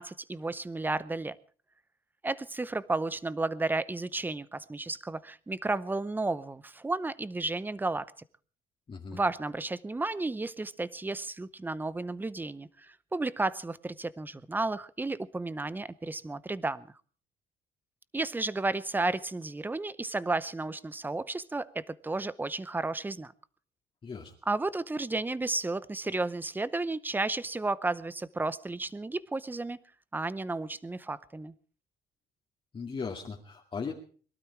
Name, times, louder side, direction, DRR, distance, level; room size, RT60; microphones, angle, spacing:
voice 1, 0.0-1.4 2.2-8.1 9.1-16.9 18.1-23.3 24.5-29.8 30.1-31.5, right 2 dB, 10° right, 18 dB, 0.7 m, -33 dB
voice 2, 8.9-9.2 24.0-24.3 32.7-33.9, left 5 dB, 30° left, 0 dB, 2.3 m, -37 dB
22.5 x 12.5 x 4.7 m, 0.42 s
cardioid pair, 110°, 17 cm